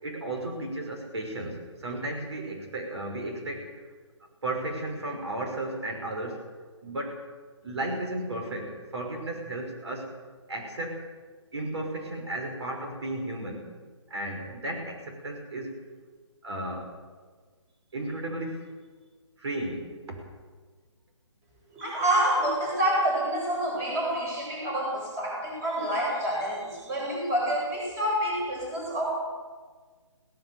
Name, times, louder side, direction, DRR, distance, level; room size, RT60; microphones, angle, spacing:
voice 1, 0.0-3.8 4.4-6.5 6.8-7.2 7.6-10.1 10.5-11.0 11.5-13.7 14.1-15.7 16.4-16.9 17.9-18.6 19.4-20.3, right 1 dB, 60° right, 2 dB, 5.6 m, -34 dB
voice 2, 21.7-29.1, right 1 dB, 15° right, -2 dB, 7.7 m, -27 dB
22.0 x 17.5 x 7.1 m, 1.5 s
hypercardioid pair, 155°, 16 cm